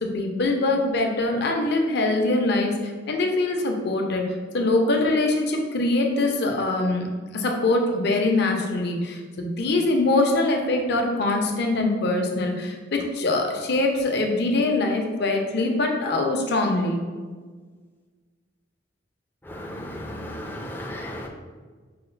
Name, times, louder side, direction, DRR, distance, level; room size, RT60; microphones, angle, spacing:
voice 1, 0.0-4.2 4.5-7.1 7.3-17.0, left 2 dB, 60° left, 2 dB, 0.6 m, -23 dB
voice 2, 19.5-21.3, left 1 dB, 10° left, 0 dB, 0.3 m, -35 dB
4.8 x 2.3 x 3.2 m, 1.5 s
head